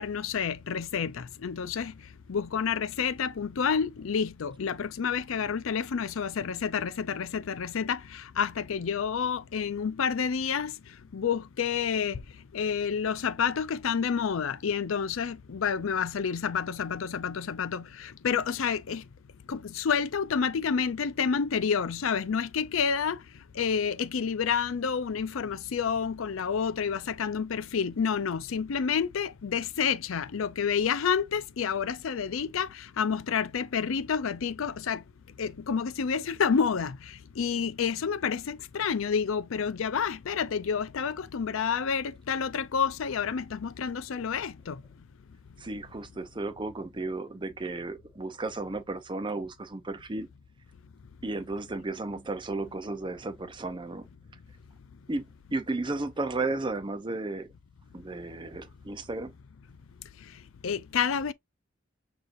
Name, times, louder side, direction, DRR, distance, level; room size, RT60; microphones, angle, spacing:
voice 1, 0.0-1.9 2.3-10.7 11.1-12.2 12.5-19.0 19.5-23.2 23.6-32.7 33.0-35.0 35.4-37.0 37.4-44.8 60.6-61.3, left 6 dB, 80° left, 0.5 m, -29 dB
voice 2, 45.6-50.3 51.2-54.1 55.1-57.5 57.9-59.3, right 2 dB, 25° right, 0.6 m, -34 dB
6.4 x 2.9 x 2.5 m
head